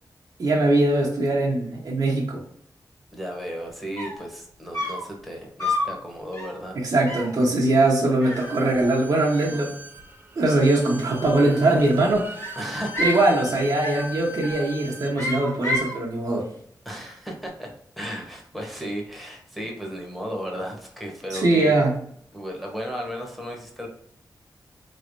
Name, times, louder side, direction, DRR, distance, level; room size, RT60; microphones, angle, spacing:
voice 1, 0.4-2.4 6.7-9.7 10.4-12.4 13.0-16.5 21.3-22.0, right 2 dB, 65° right, -3 dB, 0.9 m, -21 dB
voice 2, 3.1-6.8 12.6-13.1 16.8-17.7 18.0-21.7 22.3-23.9, equal, ahead, -1 dB, 1.1 m, -34 dB
sound 1, 4.0-4.3 4.7-5.1 5.6-6.0 6.3-6.6 7.1-7.4 8.2-9.1 9.3-10.0 11.3-11.9 12.4-13.3 13.8-14.1 14.4-14.8 15.2-16.0, left 1 dB, 40° left, 1.5 m, -30 dB
Bowed string instrument, 8.3-15.2, equal, 30° right, 0.5 m, -39 dB
4.1 x 3.2 x 2.6 m, 0.64 s
wide cardioid pair, 125°, 7 cm